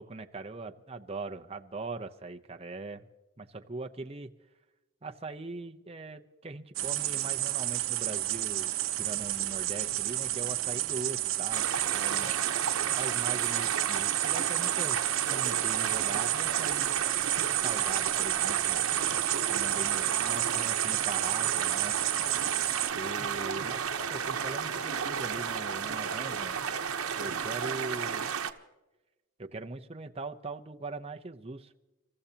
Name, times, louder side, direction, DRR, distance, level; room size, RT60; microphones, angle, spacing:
voice 1, 0.0-3.1 3.4-4.3 5.0-12.3 13.0-15.0 15.3-16.9 17.6-19.0 19.5-21.9 22.9-23.8 24.1-26.6 27.2-28.3 29.4-31.7, right 3 dB, 25° right, 5 dB, 0.7 m, -41 dB
sound 1, 6.7-22.9, right 15 dB, 65° right, 0.6 m, -30 dB
sound 2, 9.0-27.5, right 1 dB, 10° left, 5.9 m, -60 dB
sound 3, 11.5-28.5, right 7 dB, 85° right, 1.0 m, -33 dB
30.0 x 14.5 x 2.9 m, 1.1 s
head